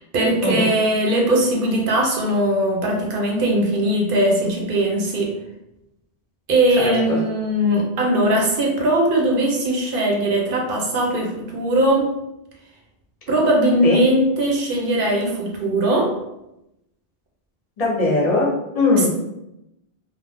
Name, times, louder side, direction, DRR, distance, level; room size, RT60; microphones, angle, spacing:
voice 1, 0.0-5.4 6.5-12.2 13.3-16.1, right 1 dB, 65° right, 0 dB, 0.8 m, -20 dB
voice 2, 6.8-7.2 13.8-14.0 17.8-19.1, left 3 dB, 40° left, -4 dB, 0.7 m, -20 dB
2.5 x 2.1 x 3.3 m, 0.87 s
omnidirectional pair, 1.0 m